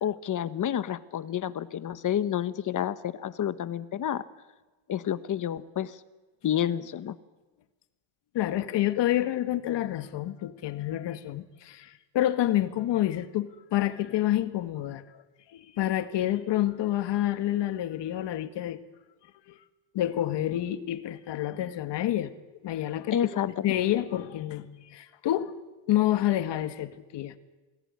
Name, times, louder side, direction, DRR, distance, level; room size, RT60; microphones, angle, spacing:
voice 1, 0.0-4.2 4.9-6.0 6.4-7.2 23.1-23.7, left 10 dB, 40° left, 13 dB, 1.3 m, -29 dB
voice 2, 8.3-15.2 15.5-18.8 19.5-19.6 19.9-22.3 22.6-23.2 23.6-25.5 25.9-27.4, left 13 dB, 60° left, 10 dB, 1.9 m, -28 dB
28.5 x 19.5 x 9.8 m, 1.2 s
cardioid pair, 135°, 48 cm